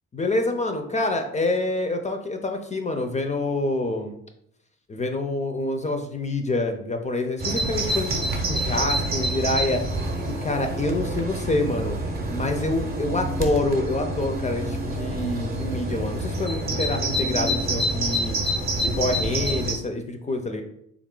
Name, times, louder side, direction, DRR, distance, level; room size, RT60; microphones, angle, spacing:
voice 1, 0.1-4.2 4.9-9.8 10.3-12.0 12.3-18.4 18.8-20.6, left 2 dB, 25° left, 5 dB, 0.4 m, -27 dB
Bird vocalization bird call bird song, 7.4-19.7, right 1 dB, 30° right, 0.7 m, -27 dB
3.6 x 2.4 x 3.6 m, 0.71 s
cardioid pair, 90°, 30 cm